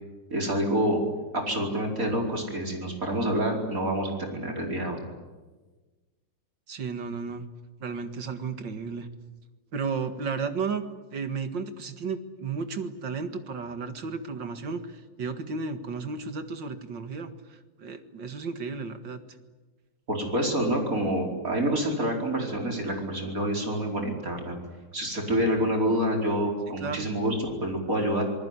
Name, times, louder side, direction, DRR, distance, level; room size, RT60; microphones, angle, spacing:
voice 1, 0.3-1.0 1.3-5.0 20.1-24.6 24.9-28.2, equal, 45° right, 2 dB, 5.1 m, -27 dB
voice 2, 6.7-7.5 7.8-9.1 9.7-10.9 11.1-19.2 26.8-27.1, right 5 dB, 70° right, 9 dB, 2.5 m, -33 dB
27.0 x 19.5 x 9.8 m, 1.3 s
omnidirectional pair, 2.1 m